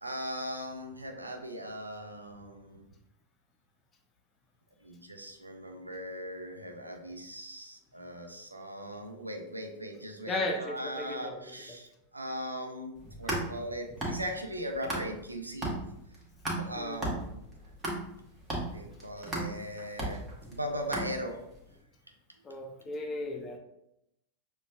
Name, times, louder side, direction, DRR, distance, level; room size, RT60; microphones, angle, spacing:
voice 1, 0.0-2.9 4.8-15.7 16.6-17.3 18.7-20.2 20.5-21.4, equal, 85° right, 3 dB, 0.5 m, -39 dB
voice 2, 10.3-11.4 16.8-17.1 22.4-23.6, left 2 dB, 25° left, 4 dB, 0.6 m, -35 dB
sound 1, 13.0-15.3 15.6-21.6, right 1 dB, 15° right, 1.2 m, -36 dB
6.7 x 2.3 x 2.3 m, 0.81 s
figure-of-eight pair, 90°, 0 cm